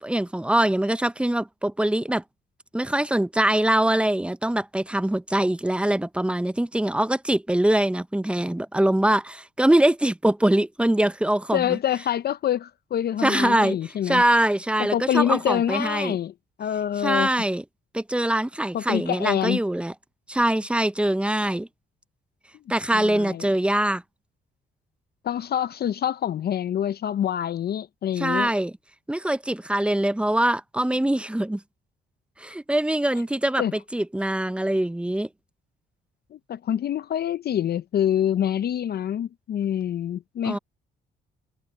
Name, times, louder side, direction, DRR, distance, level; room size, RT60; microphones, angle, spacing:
voice 1, 0.0-2.2 2.7-11.8 13.2-13.8 14.1-16.2 17.0-17.6 17.9-19.9 20.3-21.7 22.7-24.0 28.2-28.7 29.1-31.6 32.4-35.3 40.4-40.6, right 1 dB, 5° right, 0.6 m, -23 dB
voice 2, 11.5-14.2 14.8-16.3 16.6-17.3 18.7-19.6 22.9-23.4 25.2-28.5 33.6-33.7 36.3-40.6, left 10 dB, 55° left, 0.5 m, -26 dB
cardioid pair, 90°, 20 cm